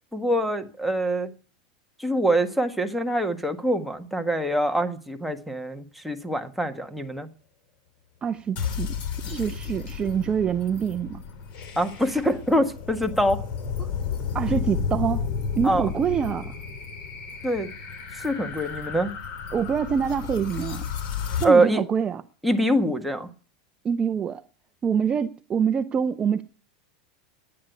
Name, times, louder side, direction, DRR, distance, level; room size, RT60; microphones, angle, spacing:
voice 1, 0.1-1.3 2.0-7.3 11.8-13.4 13.8-13.9 15.6-15.9 17.4-17.7 18.2-19.2 21.4-21.8 22.4-23.3, right 1 dB, ahead, 1.6 m, -24 dB
voice 2, 8.2-8.9 9.3-11.2 14.3-15.3 15.6-16.6 19.5-20.9 21.4-22.2 23.8-24.4 24.8-26.4, right 7 dB, 25° right, 0.7 m, -25 dB
sound 1, 8.6-21.5, left 6 dB, 45° left, 3.4 m, -32 dB
11.0 x 9.7 x 9.3 m
hypercardioid pair, 110°, 4 cm